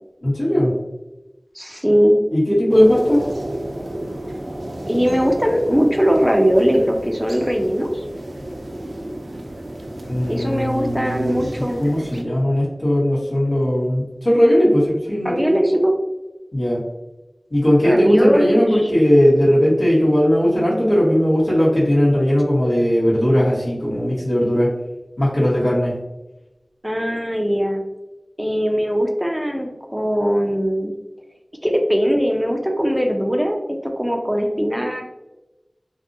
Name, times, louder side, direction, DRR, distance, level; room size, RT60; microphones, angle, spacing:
voice 1, 0.2-0.7 2.3-3.3 10.1-11.5 11.8-15.6 16.5-16.8 17.5-24.7 25.2-25.9, equal, 80° left, -8 dB, 1.3 m, -18 dB
voice 2, 1.5-2.2 4.9-8.0 10.3-11.8 15.2-15.9 17.8-18.8 26.8-27.8 28.4-30.9 31.6-35.0, equal, 5° right, 2 dB, 0.4 m, -20 dB
sound 1, 2.7-12.2, right 1 dB, 80° right, 0.3 m, -32 dB
2.6 x 2.4 x 2.6 m, 1.0 s
wide cardioid pair, 45°, 0 cm